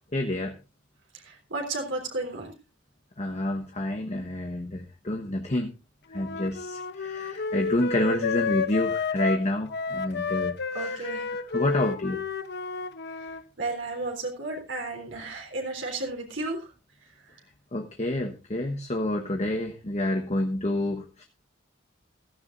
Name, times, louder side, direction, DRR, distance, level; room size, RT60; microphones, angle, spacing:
voice 1, 0.1-0.5 3.2-5.7 6.1-12.2 17.7-21.2, left 1 dB, 35° left, 3 dB, 1.2 m, -29 dB
voice 2, 1.1-2.5 10.7-11.3 13.2-13.3 13.6-16.7, right 2 dB, 65° right, 1 dB, 3.6 m, -33 dB
Wind instrument woodwind instrument, 6.1-13.4, left 4 dB, 55° left, 0.8 m, -31 dB
15.5 x 14.5 x 2.6 m, 0.28 s
head